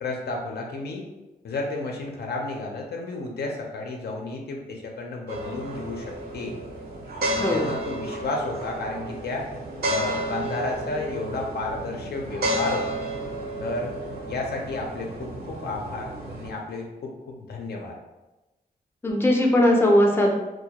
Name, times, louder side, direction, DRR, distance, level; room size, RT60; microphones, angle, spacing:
voice 1, 0.0-1.0 1.4-6.0 6.3-6.5 7.3-9.5 9.9-13.0 13.6-13.9 14.3-16.1 16.4-18.0, left 2 dB, 85° left, 0 dB, 0.5 m, -32 dB
sound 1, 5.3-16.5, right 1 dB, 75° right, 0.6 m, -32 dB
voice 2, 7.4-7.7 19.0-20.3, left 1 dB, 15° left, 0 dB, 0.4 m, -19 dB
2.2 x 2.1 x 2.8 m, 1.1 s
wide cardioid pair, 105°, 16 cm